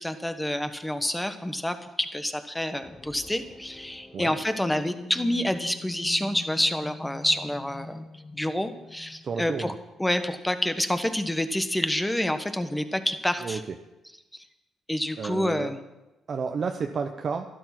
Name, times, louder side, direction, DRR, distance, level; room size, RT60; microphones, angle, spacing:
voice 1, 0.0-8.0 8.3-9.7 10.0-13.6 14.9-15.8, left 1 dB, 10° left, 9 dB, 1.2 m, -28 dB
sound 1, 2.8-10.6, left 2 dB, 25° left, 0.9 m, -44 dB
voice 2, 9.2-9.7 13.4-13.6 15.2-15.7 16.3-17.5, right 5 dB, 45° right, 4 dB, 0.9 m, -31 dB
12.5 x 12.0 x 6.0 m, 1.0 s
cardioid pair, 90°, 0 cm